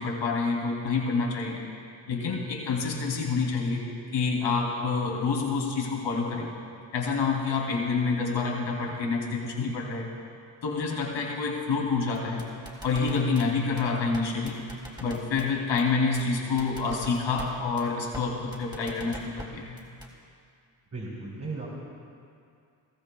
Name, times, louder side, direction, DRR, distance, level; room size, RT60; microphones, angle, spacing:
voice 1, 0.0-1.6 2.1-3.8 4.1-6.5 6.9-10.1 10.6-12.5 12.8-14.6 15.0-19.8, left 4 dB, 65° left, -1 dB, 3.0 m, -28 dB
sound 1, 12.1-13.4 13.8-13.9 14.1-14.2 14.5-15.5 15.8-15.9 16.1-16.2 16.6-17.5 17.8-17.9 18.1-18.2 18.5-19.5 19.8-20.1, equal, 10° right, 3.6 m, -41 dB
voice 2, 20.9-21.7, right 3 dB, 35° right, -8 dB, 3.7 m, -36 dB
21.5 x 14.5 x 2.3 m, 2.4 s
supercardioid pair, 60°, 47 cm